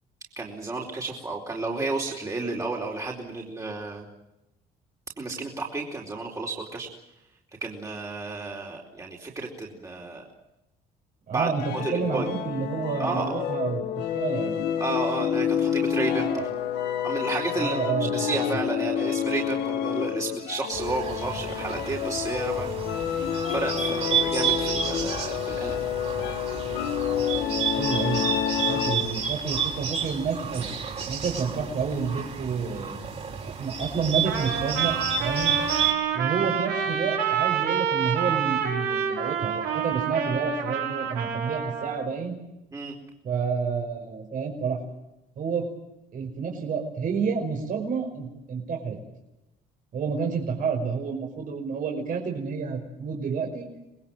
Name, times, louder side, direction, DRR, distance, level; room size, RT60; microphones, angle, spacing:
voice 1, 0.4-4.0 5.2-6.9 7.6-10.3 11.3-12.3 13.0-13.5 14.8-16.3 17.0-17.8 18.1-25.8 42.7-43.0, right 3 dB, 20° right, -2 dB, 4.3 m, -32 dB
voice 2, 11.3-14.6 16.2-16.5 17.6-18.1 18.5-18.6 27.7-28.3 28.7-30.7 31.1-33.0 33.4-35.6 36.1-42.4 43.2-44.8 45.4-45.7 46.1-49.0 49.9-53.7, right 5 dB, 55° right, 1 dB, 5.6 m, -29 dB
sound 1, 11.5-29.2, left 9 dB, 85° left, 2.1 m, -29 dB
Bird, 20.7-35.9, right 7 dB, 40° right, 5.8 m, -30 dB
Trumpet, 34.2-42.1, right 7 dB, 90° right, 5.7 m, -28 dB
26.5 x 20.5 x 7.7 m, 0.90 s
cardioid pair, 110°, 17 cm